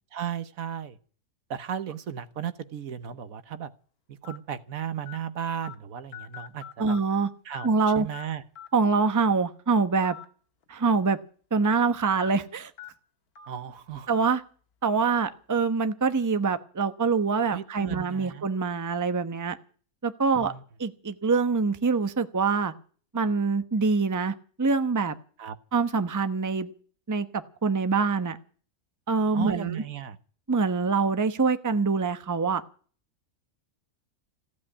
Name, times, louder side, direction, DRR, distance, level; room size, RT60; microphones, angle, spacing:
voice 1, 0.1-1.0 1.5-3.7 4.1-7.0 7.4-8.4 13.5-14.1 17.5-18.5 20.3-20.6 25.4-25.5 29.3-30.2, right 9 dB, 70° right, 13 dB, 1.4 m, -35 dB
sound 1, 2.1-2.3 3.0-3.1 4.2-4.4 5.1-5.2 5.6-5.7 6.1-7.3 7.5-8.2 8.6-8.7 10.0-10.2 10.6-10.7 12.1-12.3 12.8-12.9 13.4-13.5 14.1-14.3, left 11 dB, 80° left, 2.0 m, -43 dB
voice 2, 6.8-7.3 7.6-8.1 8.7-10.2 10.7-11.2 11.5-12.7 14.1-14.4 14.8-19.6 20.0-20.5 20.8-22.7 23.1-25.1 25.7-26.7 27.1-28.4 29.1-29.8 30.5-32.6, right 4 dB, 15° right, 10 dB, 0.8 m, -25 dB
15.5 x 8.5 x 9.8 m, 0.43 s
omnidirectional pair, 1.6 m